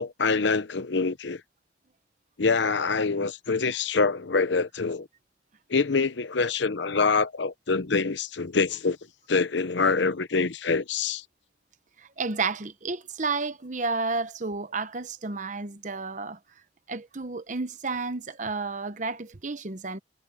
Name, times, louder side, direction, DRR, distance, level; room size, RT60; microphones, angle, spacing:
voice 1, 0.0-1.4 2.4-5.1 5.7-9.0 9.3-11.2, left 4 dB, 75° left, 0.8 m, -25 dB
voice 2, 12.0-16.4 16.9-20.0, right 4 dB, 40° right, 0.9 m, -31 dB
head